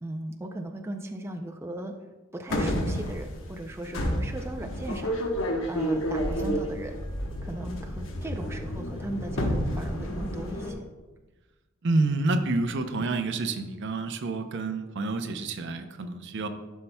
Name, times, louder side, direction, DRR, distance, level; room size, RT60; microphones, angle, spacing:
voice 1, 0.0-1.9 2.3-5.1 5.7-7.0 7.4-10.8, right 1 dB, 15° right, 3 dB, 0.4 m, -37 dB
sound 1, 2.5-10.7, equal, 70° left, 1.0 m, -30 dB
voice 2, 11.8-16.5, right 3 dB, 60° right, 8 dB, 0.6 m, -28 dB
11.5 x 5.5 x 2.2 m, 1.2 s
head